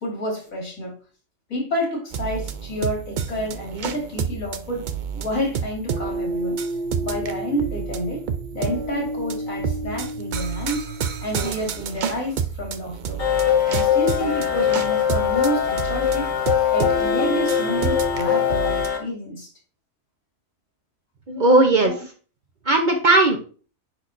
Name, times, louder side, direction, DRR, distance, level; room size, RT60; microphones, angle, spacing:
voice 1, 0.0-0.9 1.5-4.9 5.1-6.6 7.0-8.3 8.5-10.9 11.2-13.2 13.7-16.3 16.7-19.5 21.7-22.0, equal, 80° left, -1 dB, 2.9 m, -29 dB
sound 1, 2.1-18.9, right 5 dB, 70° right, 0.4 m, -29 dB
sound 2, 13.2-19.0, left 9 dB, 35° left, 1.4 m, -22 dB
voice 2, 21.3-21.9 22.7-23.4, right 2 dB, 40° right, 4 dB, 0.8 m, -17 dB
9.9 x 4.6 x 2.6 m, 0.39 s
omnidirectional pair, 1.4 m